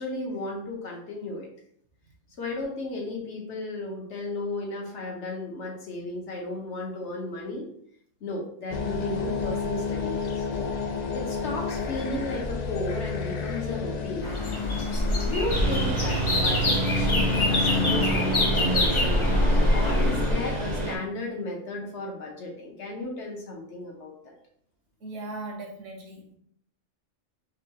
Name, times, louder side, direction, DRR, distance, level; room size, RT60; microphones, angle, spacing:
voice 1, 0.0-1.5 2.4-7.7 8.2-10.5 11.1-14.3 15.2-24.3, left 2 dB, 60° left, 0 dB, 1.2 m, -34 dB
sound 1, 8.7-20.9, left 4 dB, 90° left, 0.3 m, -32 dB
sound 2, 14.2-20.3, left 1 dB, 35° left, 0.5 m, -25 dB
Engine, 15.5-21.0, right 2 dB, 40° right, 0.6 m, -28 dB
voice 2, 25.0-26.4, right 2 dB, 70° right, 2 dB, 1.2 m, -38 dB
5.6 x 2.3 x 2.8 m, 0.66 s
omnidirectional pair, 1.3 m